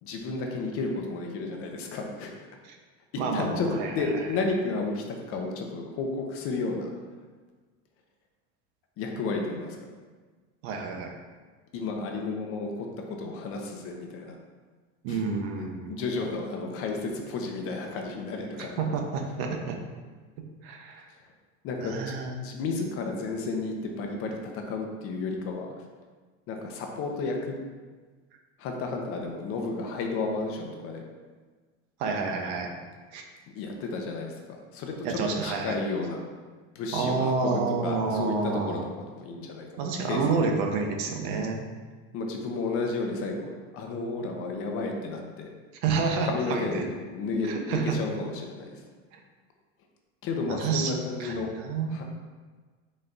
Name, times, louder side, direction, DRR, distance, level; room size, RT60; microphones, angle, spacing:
voice 1, 0.0-2.3 3.3-6.9 9.0-9.8 11.7-14.4 15.1-15.2 15.9-18.8 21.6-22.1 22.4-25.7 26.5-27.6 28.6-31.0 33.6-36.2 36.7-38.8 39.2-39.7 40.0-40.2 42.1-45.5 46.2-48.8 50.2-51.5 51.9-52.0, left 3 dB, 40° left, 2 dB, 0.6 m, -32 dB
voice 2, 3.2-4.3 10.6-11.1 15.0-16.0 18.8-19.8 20.4-21.1 21.8-22.3 32.0-32.8 33.1-33.2 35.0-35.8 36.9-38.9 39.8-41.7 45.8-46.8 47.4-48.0 49.1-49.2 50.5-50.9 51.2-52.0, right 4 dB, 65° right, 3 dB, 0.8 m, -29 dB
4.1 x 3.3 x 3.8 m, 1.4 s
cardioid pair, 155°, 34 cm